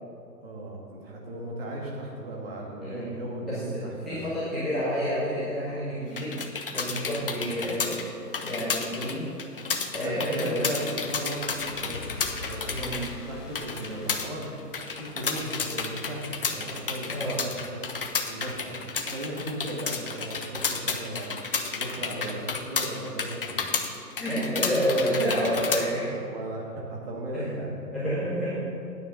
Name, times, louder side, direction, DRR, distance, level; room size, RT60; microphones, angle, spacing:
voice 1, 0.4-4.2 7.3-7.5 10.0-12.1 12.4-12.7 13.3-14.5 14.9-17.8 18.3-18.8 19.1-21.3 21.7-23.7 25.0-25.3 25.7-28.1, right 1 dB, 35° right, -2 dB, 2.3 m, -36 dB
voice 2, 2.8-3.2 3.4-3.6 4.0-6.4 6.7-8.0 8.4-9.3 9.9-10.7 12.7-13.0 17.1-17.4 24.2-26.1 27.3-27.6 27.9-28.5, equal, ahead, -15 dB, 0.9 m, -29 dB
sound 1, 6.1-25.9, left 5 dB, 35° left, 0.7 m, -32 dB
sound 2, 11.3-15.0, left 3 dB, 65° left, 1.5 m, -42 dB
9.4 x 9.4 x 5.7 m, 2.5 s
figure-of-eight pair, 150°, 50 cm